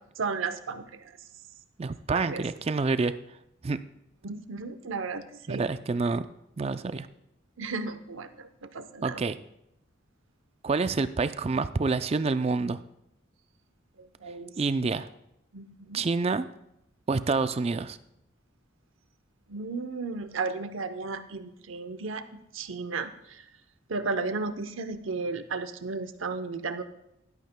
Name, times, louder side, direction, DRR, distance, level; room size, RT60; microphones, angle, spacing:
voice 1, 0.2-1.1 2.1-2.4 4.2-5.6 7.6-9.2 14.0-14.6 15.5-16.0 19.5-23.4 23.9-26.8, right 4 dB, 85° right, 10 dB, 0.8 m, -34 dB
voice 2, 1.8-3.1 3.6-3.8 5.5-6.3 6.6-7.1 9.0-9.4 10.6-12.8 14.6-15.1 15.9-16.5 17.1-18.0, right 4 dB, 30° right, 12 dB, 0.4 m, -27 dB
16.5 x 12.0 x 2.2 m, 0.82 s
head